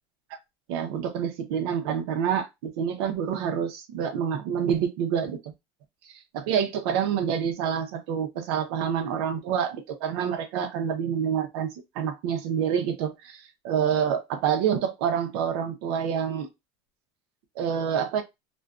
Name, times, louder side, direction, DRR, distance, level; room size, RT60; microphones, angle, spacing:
voice 1, 0.7-5.4 6.3-16.5 17.6-18.2, right 8 dB, 75° right, 0.6 m, -27 dB
2.5 x 2.2 x 2.3 m
supercardioid pair, 140°, 13 cm